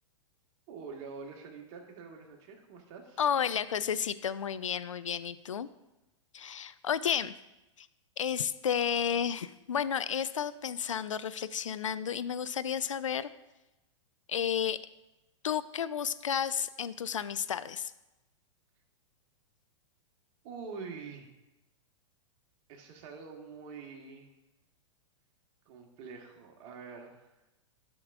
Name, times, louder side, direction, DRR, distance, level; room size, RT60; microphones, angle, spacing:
voice 1, 0.7-3.2 20.4-21.3 22.7-24.3 25.6-27.3, right 5 dB, 45° right, 2 dB, 1.4 m, -45 dB
voice 2, 3.2-5.7 6.3-7.4 7.8-7.9 8.2-13.3 14.3-14.8 15.4-17.9, left 8 dB, 85° left, 15 dB, 0.4 m, -32 dB
11.5 x 6.1 x 2.5 m, 0.99 s
hypercardioid pair, 110°, 16 cm